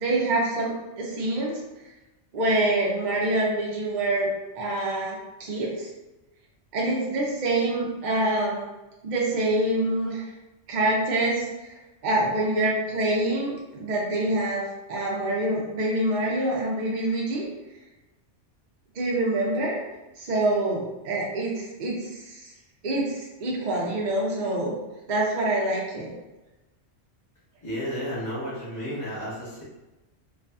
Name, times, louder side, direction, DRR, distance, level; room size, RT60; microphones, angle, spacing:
voice 1, 0.0-1.6 2.3-4.3 4.5-5.9 6.7-8.7 9.0-10.2 10.7-11.7 12.0-14.6 14.9-17.5 19.0-19.8 20.2-22.5 22.8-24.7 25.1-26.1, right 1 dB, 50° right, -3 dB, 0.6 m, -26 dB
voice 2, 27.6-29.6, equal, 40° left, -7 dB, 1.0 m, -32 dB
2.6 x 2.3 x 2.2 m, 1.0 s
omnidirectional pair, 1.2 m